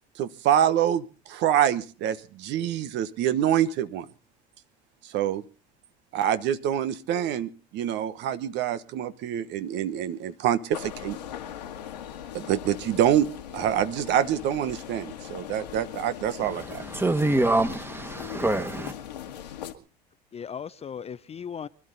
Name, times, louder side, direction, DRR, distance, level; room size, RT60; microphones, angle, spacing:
voice 1, 0.2-4.1 5.1-5.4 6.1-11.2 12.3-13.3 13.5-16.8, right 10 dB, 55° right, 1.2 m, -26 dB
sound 1, 10.7-19.7, left 10 dB, 80° left, 1.8 m, -40 dB
voice 2, 16.4-18.9, right 2 dB, 10° right, 1.8 m, -26 dB
voice 3, 18.1-18.7 20.3-21.7, left 7 dB, 30° left, 0.7 m, -38 dB
24.5 x 12.5 x 4.1 m
hypercardioid pair, 70°, 21 cm